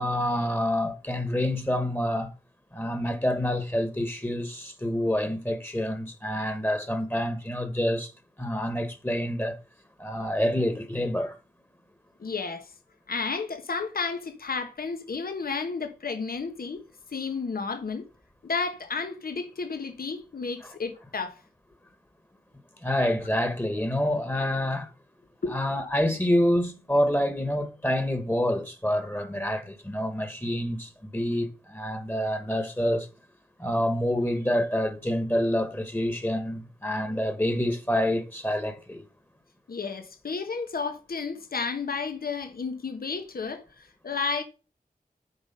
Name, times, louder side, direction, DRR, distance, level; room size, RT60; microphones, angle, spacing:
voice 1, 0.0-2.3 2.7-8.1 8.4-9.6 10.0-11.4 22.8-24.9 25.5-33.1 33.6-39.0, left 1 dB, 15° left, 1.3 m, -27 dB
voice 2, 12.2-12.7 13.1-16.8 17.1-18.0 18.4-21.4 25.4-25.5 39.7-44.4, left 4 dB, 85° left, 1.2 m, -32 dB
8.0 x 5.1 x 5.3 m
wide cardioid pair, 75°, 15 cm